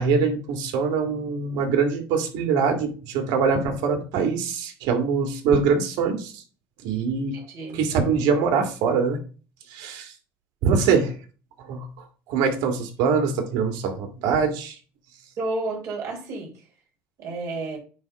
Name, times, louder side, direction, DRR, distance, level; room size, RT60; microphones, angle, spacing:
voice 1, 0.0-6.4 6.8-7.4 7.7-9.2 9.7-10.1 10.6-11.1 11.6-11.9 12.3-14.8, right 5 dB, 80° right, 2.0 m, -23 dB
voice 2, 7.3-7.8 15.4-16.5 17.2-17.8, right 2 dB, 50° right, 3.9 m, -31 dB
9.4 x 3.6 x 4.8 m
cardioid pair, 135°, 7 cm